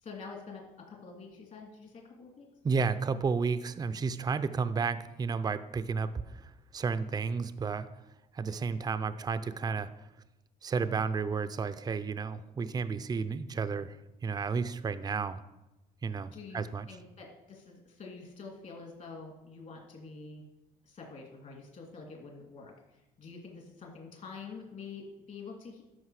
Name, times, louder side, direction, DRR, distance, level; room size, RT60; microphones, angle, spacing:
voice 1, 0.0-2.5 16.3-20.4 20.8-25.8, left 4 dB, 50° left, 1 dB, 2.5 m, -47 dB
voice 2, 2.6-7.9 8.3-9.9 10.6-14.0 14.2-15.4 16.0-16.9, right 5 dB, 25° right, 12 dB, 0.5 m, -32 dB
12.5 x 5.5 x 4.8 m, 0.96 s
cardioid pair, 110°, 17 cm